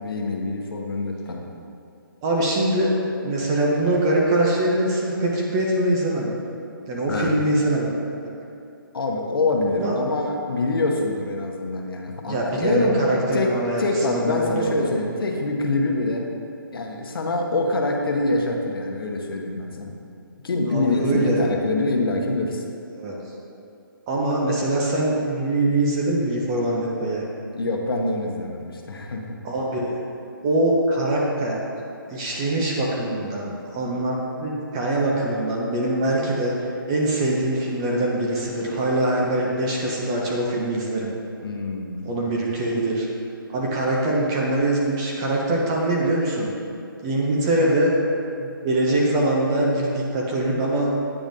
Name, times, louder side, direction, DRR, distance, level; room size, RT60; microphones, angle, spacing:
voice 1, 0.0-1.4 7.1-7.4 8.9-12.9 13.3-13.5 13.8-16.3 16.7-19.9 20.4-22.6 27.5-29.2 41.4-42.2, left 2 dB, 75° left, 1 dB, 0.9 m, -25 dB
voice 2, 2.2-2.9 3.2-6.3 6.9-8.3 9.8-9.9 12.3-14.9 20.7-21.5 22.9-23.1 24.1-27.2 29.4-30.0 30.4-31.6 32.1-36.5 36.9-41.1 42.0-43.1 43.5-46.5 47.0-47.9 48.4-50.9, right 1 dB, 10° right, -3 dB, 0.3 m, -23 dB
8.8 x 5.0 x 2.6 m, 2.5 s
hypercardioid pair, 165°, 12 cm